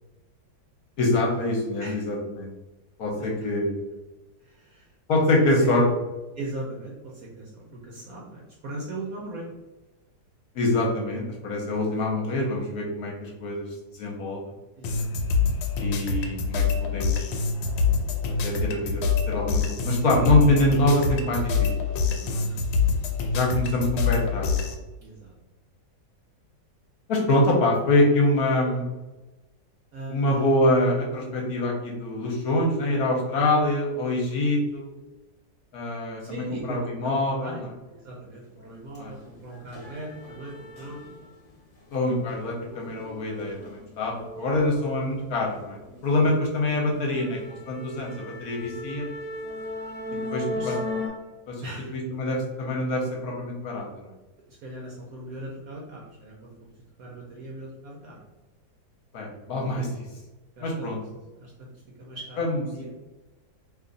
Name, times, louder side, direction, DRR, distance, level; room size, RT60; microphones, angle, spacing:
voice 1, 1.0-2.5 3.0-3.7 5.1-5.8 10.5-13.7 13.9-14.4 15.8-17.3 18.4-22.4 23.3-24.7 27.1-28.8 30.1-34.8 35.7-36.4 36.7-37.5 39.0-39.1 41.9-47.4 47.7-49.1 50.3-50.7 51.5-51.7 51.9-54.1 59.1-60.0 60.6-61.0 62.4-62.9, left 1 dB, 65° left, -1 dB, 1.1 m, -25 dB
voice 2, 4.4-4.9 5.4-5.7 6.3-9.5 14.8-15.4 22.3-23.1 25.0-25.3 29.9-30.4 36.2-41.0 44.4-44.6 46.2-46.3 50.5-50.8 51.6-52.0 54.5-56.5 57.0-58.3 60.6-60.9 61.3-62.9, right 2 dB, 65° right, -3 dB, 0.9 m, -39 dB
sound 1, 14.8-24.8, left 5 dB, 90° left, 1.3 m, -25 dB
sound 2, 38.6-38.7 39.1-41.5 41.8-45.6 46.0-46.3 46.6-46.7 47.1-51.1, left 1 dB, 35° left, 0.9 m, -37 dB
3.0 x 2.5 x 3.8 m, 1.1 s
omnidirectional pair, 2.0 m